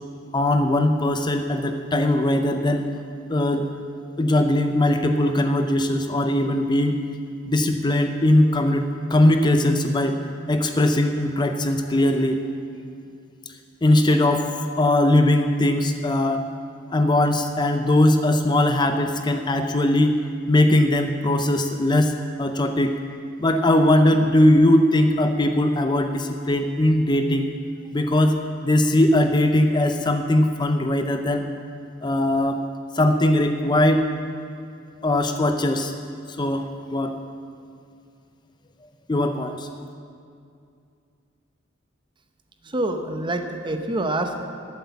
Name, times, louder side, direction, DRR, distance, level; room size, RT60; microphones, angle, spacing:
voice 1, 0.3-2.8 3.3-3.7 4.2-7.0 7.5-10.2 10.5-12.4 13.8-16.5 16.9-20.2 20.5-23.0 23.4-27.5 27.9-28.4 28.6-31.5 32.0-32.6 32.9-34.0 35.0-35.9 36.3-37.2 39.1-39.7, left 1 dB, 25° left, 6 dB, 0.5 m, -20 dB
voice 2, 42.6-44.4, right 1 dB, 25° right, 5 dB, 0.8 m, -26 dB
12.5 x 8.0 x 7.1 m, 2.4 s
head